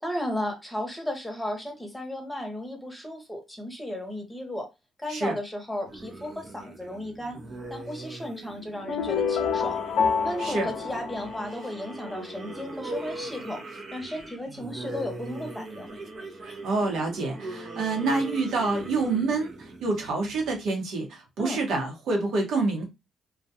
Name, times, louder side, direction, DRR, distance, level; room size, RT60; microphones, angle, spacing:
voice 1, 0.0-4.7 5.0-7.4 7.7-9.8 10.2-13.6 13.9-16.0 21.4-21.6, left 1 dB, 5° left, 0.9 m, -34 dB
sound 1, 5.8-20.7, right 2 dB, 55° right, 0.7 m, -40 dB
sound 2, 8.9-11.9, left 6 dB, 75° left, 0.4 m, -27 dB
voice 2, 16.6-22.8, right 3 dB, 75° right, 0.9 m, -27 dB
2.3 x 2.2 x 2.7 m
cardioid pair, 90°, 0 cm